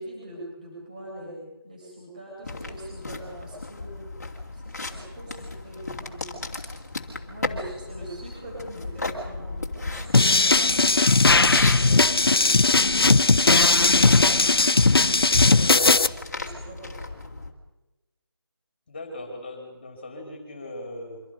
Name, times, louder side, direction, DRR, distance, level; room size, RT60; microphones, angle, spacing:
voice 1, 0.0-4.1 4.5-6.4 7.3-12.2 13.2-14.1 14.5-16.9, right 1 dB, 20° right, -4 dB, 7.9 m, -43 dB
sound 1, 2.4-17.5, left 2 dB, 40° left, 2.8 m, -35 dB
sound 2, 10.1-16.1, left 3 dB, 70° left, 0.9 m, -18 dB
voice 2, 18.9-21.2, left 1 dB, 25° left, 3 dB, 4.4 m, -39 dB
25.5 x 25.5 x 5.3 m, 1.0 s
figure-of-eight pair, 180°, 13 cm